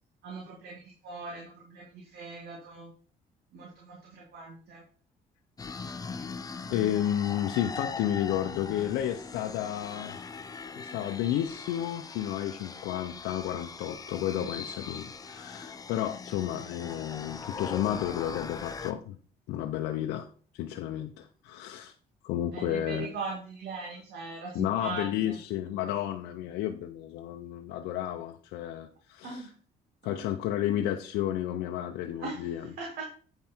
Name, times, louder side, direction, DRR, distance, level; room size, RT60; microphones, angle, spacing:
voice 1, 0.2-2.9 3.5-4.8 14.3-14.6 22.5-25.4 29.2-29.5 30.1-30.3 32.2-33.1, right 4 dB, 70° right, -2 dB, 2.4 m, -40 dB
sound 1, 5.6-18.9, left 5 dB, 20° left, 0.7 m, -41 dB
voice 2, 6.7-10.3 10.8-19.2 19.5-20.3 20.5-21.9 22.2-23.1 23.9-24.0 24.5-29.4 30.0-32.7, left 11 dB, 90° left, 5 dB, 0.6 m, -32 dB
8.8 x 5.6 x 4.4 m, 0.43 s
cardioid pair, 110°, 17 cm